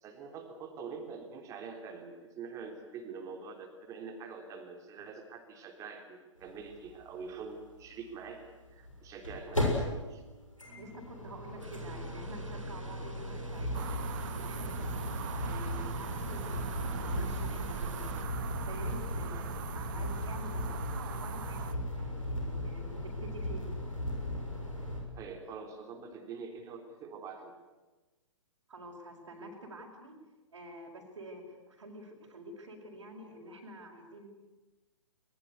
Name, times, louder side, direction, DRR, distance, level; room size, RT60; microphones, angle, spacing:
voice 1, 0.0-10.2 25.2-27.5, right 5 dB, 20° right, 4 dB, 3.6 m, -45 dB
sound 1, 6.4-6.5 6.7-6.8 8.7-25.0, left 1 dB, 90° left, 6.9 m, -36 dB
voice 2, 10.8-15.1 15.4-18.3 18.6-19.5 19.7-21.6 21.9-23.7 28.7-30.2 30.5-34.3, right 1 dB, 65° right, -3 dB, 5.1 m, -48 dB
sound 2, 11.6-18.2, right 2 dB, 80° right, 2.7 m, -51 dB
sound 3, 13.7-21.7, right 10 dB, 40° right, 1.3 m, -41 dB
21.5 x 21.0 x 9.6 m, 1.2 s
figure-of-eight pair, 120°, 16 cm